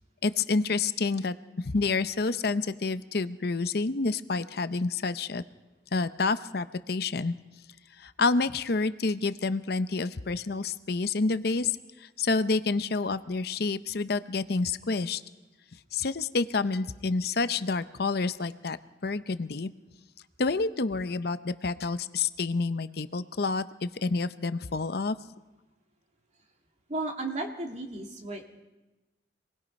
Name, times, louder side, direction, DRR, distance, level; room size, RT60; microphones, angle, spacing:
voice 1, 0.2-1.4 1.6-5.4 5.9-7.3 8.0-11.8 12.2-15.2 15.9-18.8 19.0-19.7 20.4-25.2, left 3 dB, 60° left, 12 dB, 0.7 m, -28 dB
voice 2, 26.9-28.5, right 2 dB, 40° right, 1 dB, 2.5 m, -34 dB
26.5 x 19.5 x 5.4 m, 1.1 s
head